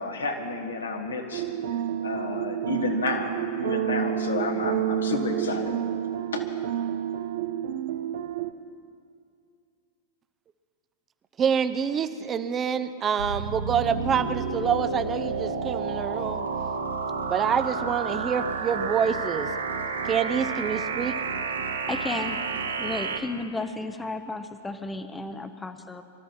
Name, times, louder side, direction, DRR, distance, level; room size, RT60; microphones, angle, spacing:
voice 1, 0.0-1.5 2.0-5.8 6.3-6.4, left 3 dB, 75° left, 3 dB, 1.7 m, -30 dB
sound 1, 1.3-8.5, right 10 dB, 60° right, 0.6 m, -29 dB
voice 2, 11.4-16.5 17.2-19.5 20.0-21.1, right 7 dB, 25° right, 10 dB, 0.7 m, -26 dB
sound 2, 13.2-23.2, right 4 dB, 80° right, 1.1 m, -30 dB
voice 3, 21.9-22.4 22.8-26.0, left 2 dB, 10° left, 9 dB, 0.9 m, -33 dB
24.5 x 13.0 x 4.4 m, 2.5 s
figure-of-eight pair, 95°, 0 cm